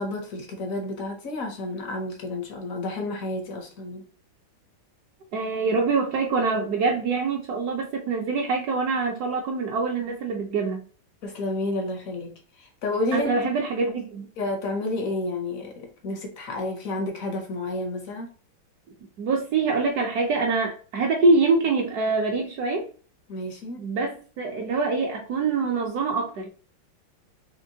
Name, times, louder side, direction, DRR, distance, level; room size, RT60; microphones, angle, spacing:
voice 1, 0.0-4.0 11.2-13.4 14.4-18.3 23.3-23.8, left 2 dB, 65° left, 4 dB, 0.8 m, -30 dB
voice 2, 5.3-10.9 13.1-14.3 19.2-22.9 23.8-26.5, right 3 dB, 65° right, 1 dB, 1.0 m, -24 dB
4.5 x 2.9 x 2.7 m, 0.40 s
omnidirectional pair, 2.2 m